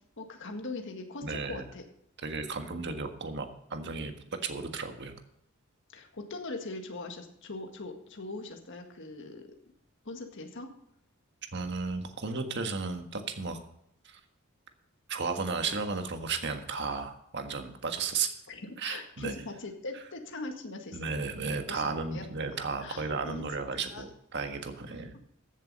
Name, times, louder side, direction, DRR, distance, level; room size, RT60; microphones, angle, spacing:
voice 1, 0.2-1.8 5.9-9.5 10.0-10.7 18.5-21.0 21.7-22.3 22.8-23.4 23.8-24.0 25.1-25.2, left 2 dB, 60° left, 4 dB, 1.8 m, -41 dB
voice 2, 1.2-1.6 2.2-4.1 4.4-5.2 11.5-13.6 14.0-14.2 15.1-18.3 18.8-19.4 20.9-25.1, right 4 dB, 55° right, 6 dB, 1.6 m, -34 dB
15.0 x 7.4 x 5.4 m, 0.74 s
head